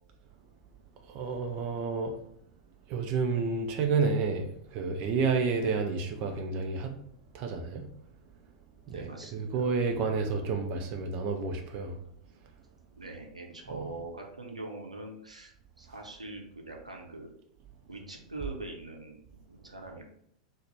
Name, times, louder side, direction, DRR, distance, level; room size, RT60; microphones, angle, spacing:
voice 1, 1.1-2.2 2.9-7.0 7.3-7.9 8.9-12.0 13.7-13.9, right 4 dB, 40° right, 0.4 m, -30 dB
voice 2, 8.9-9.7 13.0-17.4 17.9-19.2 19.5-20.1, right 2 dB, 85° right, 0.6 m, -43 dB
3.9 x 2.1 x 3.2 m
figure-of-eight pair, 95°, 4 cm